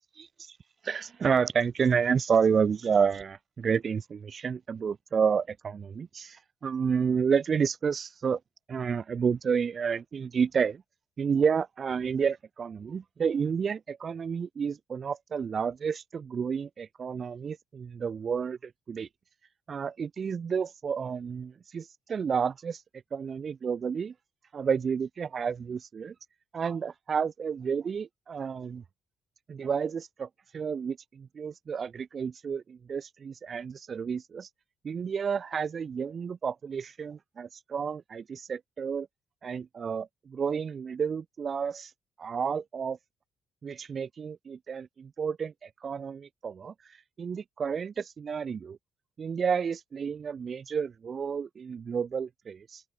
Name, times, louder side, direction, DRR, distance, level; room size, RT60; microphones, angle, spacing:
voice 1, 0.2-0.6 0.8-8.4 8.7-10.8 11.2-19.1 19.7-22.8 23.1-24.1 24.5-26.1 26.5-28.8 29.5-30.3 30.5-34.5 34.8-39.1 39.4-41.9 42.2-43.0 43.6-46.7 47.2-48.8 49.2-52.8, right 6 dB, 45° right, 1.6 m, -30 dB
open air
cardioid pair, 90°, 0 cm